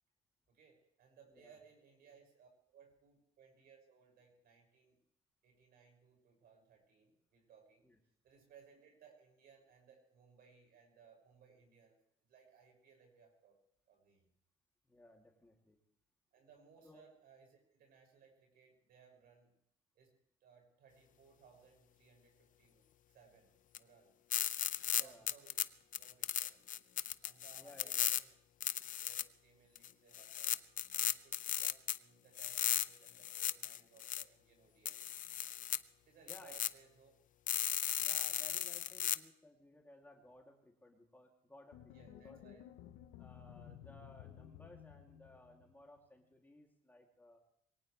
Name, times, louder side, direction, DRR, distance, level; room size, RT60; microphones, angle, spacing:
voice 1, 0.5-5.0 5.4-7.8 8.2-12.0 12.3-13.6 13.9-14.3 16.3-19.5 19.9-24.1 24.8-25.6 26.0-26.5 27.2-28.3 28.7-30.6 30.9-35.1 36.0-37.1 38.3-38.5 41.9-42.6, right 6 dB, 65° right, 2 dB, 6.6 m, -64 dB
voice 2, 14.8-15.8 16.8-17.0 24.9-25.3 27.6-28.0 36.3-36.6 38.0-42.4 43.2-47.4, left 1 dB, 10° left, 0 dB, 2.8 m, -60 dB
sound 1, 23.7-23.8 24.3-25.6 25.9-28.2 28.6-29.2 29.8-29.9 30.1-32.0 32.4-34.2 34.9-35.8 36.3-36.7 37.5-39.2, left 11 dB, 50° left, 0.6 m, -36 dB
sound 2, 41.7-46.0, left 10 dB, 90° left, 1.0 m, -55 dB
23.0 x 18.0 x 3.3 m, 0.73 s
cardioid pair, 110°, 17 cm